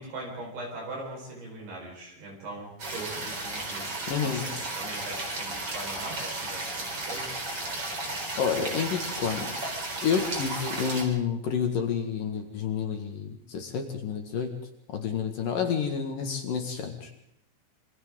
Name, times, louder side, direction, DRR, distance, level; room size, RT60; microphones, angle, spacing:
voice 1, 0.0-7.4, right 2 dB, 55° right, -1 dB, 6.8 m, -41 dB
sound 1, 2.8-11.0, right 2 dB, 30° right, 4.6 m, -34 dB
voice 2, 4.1-4.5 8.4-9.5 10.0-14.5 14.9-17.1, left 7 dB, 55° left, 4 dB, 2.9 m, -29 dB
27.5 x 26.0 x 3.8 m, 0.73 s
omnidirectional pair, 5.5 m